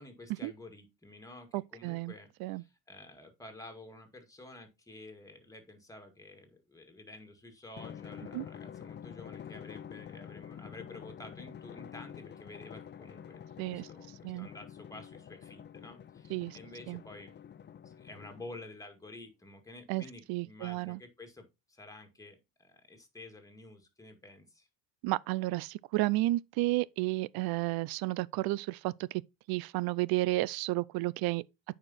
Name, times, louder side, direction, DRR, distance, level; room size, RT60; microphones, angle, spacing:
voice 1, 0.0-13.4 13.7-17.3 17.8-24.7, left 2 dB, 10° left, 2.1 m, -50 dB
voice 2, 1.5-2.1 2.4-2.6 8.3-8.4 13.6-13.9 14.2-14.5 16.3-16.6 16.9-17.0 19.9-20.0 20.3-21.0 25.0-29.2 29.5-31.4, right 19 dB, 80° right, 0.5 m, -32 dB
Drum, 7.8-18.8, left 9 dB, 30° left, 0.5 m, -48 dB
8.8 x 5.1 x 4.2 m
cardioid pair, 120°, 36 cm